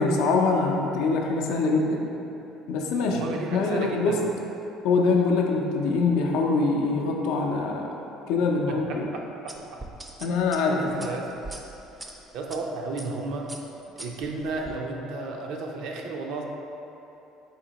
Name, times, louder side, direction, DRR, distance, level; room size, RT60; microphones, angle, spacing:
voice 1, 0.0-2.1 2.7-4.2 4.8-8.0 8.3-9.1 10.2-11.2, left 3 dB, 75° left, 0 dB, 0.5 m, -24 dB
voice 2, 3.0-4.2 8.4-9.8 10.7-11.3 12.3-13.5 14.0-16.4, right 3 dB, 70° right, 1 dB, 0.5 m, -33 dB
sound 1, 9.5-12.6 13.0-13.2 13.5-14.8, right 2 dB, 15° right, 0.4 m, -42 dB
4.3 x 2.8 x 3.9 m, 3.0 s
supercardioid pair, 105°, 0 cm